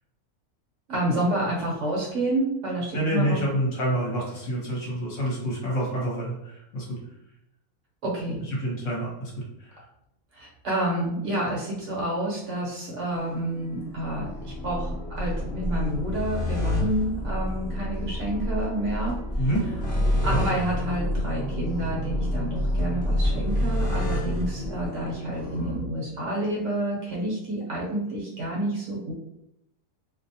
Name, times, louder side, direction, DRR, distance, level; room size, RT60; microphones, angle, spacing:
voice 1, 0.9-3.4 8.0-8.4 10.3-19.2 20.2-29.1, right 1 dB, 60° right, -3 dB, 1.0 m, -29 dB
voice 2, 2.9-7.0 8.5-9.3 9.6-9.8 19.4-19.6 20.3-20.4, right 1 dB, 60° left, -4 dB, 1.0 m, -27 dB
sound 1, 13.1-25.8, left 1 dB, 10° left, 0.5 m, -28 dB
2.6 x 2.0 x 2.7 m, 0.83 s
omnidirectional pair, 1.6 m